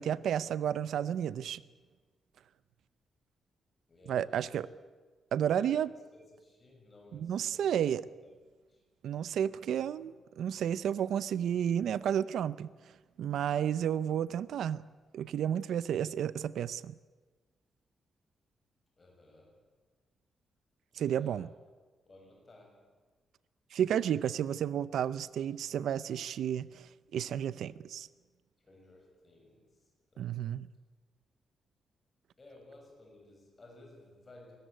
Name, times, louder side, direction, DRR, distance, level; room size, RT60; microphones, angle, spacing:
voice 1, 0.0-1.6 4.1-4.7 5.3-5.9 7.1-8.0 9.0-12.7 13.2-14.8 15.1-16.9 20.9-21.5 23.7-28.1 30.2-30.7, right 9 dB, 75° right, 0.6 m, -32 dB
voice 2, 3.9-4.7 5.5-7.7 8.0-8.3 8.7-8.8 19.0-19.6 20.9-21.5 22.1-22.9 28.6-30.5 32.4-34.6, left 2 dB, 20° left, 6.6 m, -57 dB
22.0 x 20.0 x 9.3 m
wide cardioid pair, 175°, 0 cm